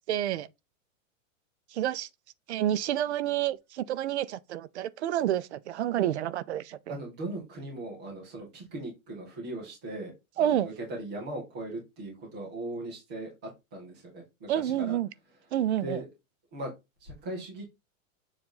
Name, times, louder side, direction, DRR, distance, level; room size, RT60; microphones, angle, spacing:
voice 1, 0.1-0.5 1.7-2.1 2.5-7.0 10.4-10.7 14.5-15.1 15.5-16.0, right 11 dB, 55° right, 0.5 m, -29 dB
voice 2, 6.9-10.1 10.4-15.0 15.8-16.1 16.5-16.7 17.0-17.7, right 1 dB, 5° right, 0.3 m, -39 dB
7.1 x 2.5 x 5.6 m
supercardioid pair, 170°, 40 cm